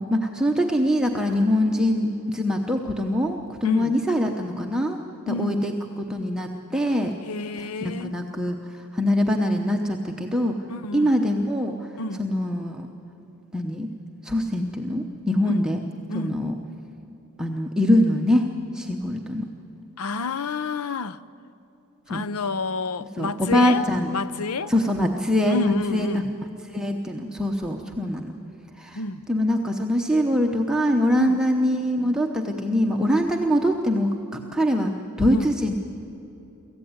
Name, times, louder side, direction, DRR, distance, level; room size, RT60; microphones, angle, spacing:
voice 1, 0.0-5.0 5.3-7.1 7.8-8.6 8.9-10.6 10.9-11.7 12.2-12.9 13.5-13.9 14.2-15.8 16.1-16.5 17.4-18.5 18.7-19.4 22.1-22.2 23.2-24.1 24.7-26.2 26.7-28.3 28.8-29.0 29.3-34.1 34.5-35.7, equal, 5° right, 0.9 m, -23 dB
voice 2, 3.6-4.0 5.3-5.6 7.2-8.2 10.7-11.1 12.0-12.2 15.4-15.6 16.1-16.4 20.0-21.2 22.1-24.7 25.4-26.3 28.9-29.2 31.2-31.4 35.3-35.5, left 3 dB, 75° left, 0.6 m, -29 dB
24.0 x 15.0 x 9.6 m
head